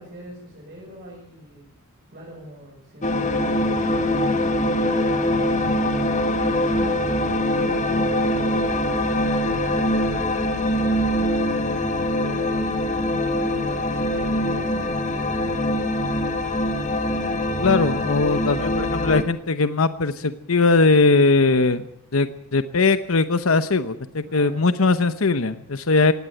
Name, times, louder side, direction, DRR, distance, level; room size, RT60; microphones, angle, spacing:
voice 1, 0.0-1.6 2.1-9.7 10.7-11.6 12.1-15.7 17.8-18.5 24.3-24.7, equal, 45° right, -4 dB, 7.0 m, -42 dB
sound 1, 3.0-19.2, left 1 dB, 35° left, 1.9 m, -23 dB
voice 2, 17.6-26.1, left 3 dB, 80° left, 11 dB, 0.9 m, -20 dB
19.0 x 16.5 x 9.1 m, 0.73 s
head